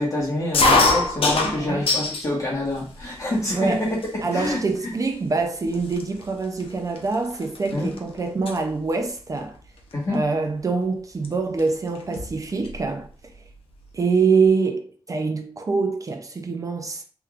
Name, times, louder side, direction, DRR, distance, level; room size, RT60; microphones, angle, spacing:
voice 1, 0.0-4.0 4.3-4.9 7.7-7.9 9.9-10.2, left 1 dB, 35° left, 1.4 m, -26 dB
sound 1, 0.5-2.3 2.7-3.4 4.0-4.1 4.4-4.8 5.4-5.5 5.7-8.0 8.3-8.6 9.9-10.1 11.2-11.3 11.6-11.7 12.0-12.8, left 3 dB, 85° left, 0.7 m, -23 dB
voice 2, 1.4-1.8 3.5-3.8 4.2-9.6 10.1-13.1 13.9-17.0, right 4 dB, 40° right, 0.4 m, -25 dB
3.2 x 3.0 x 2.4 m
wide cardioid pair, 140°, 9 cm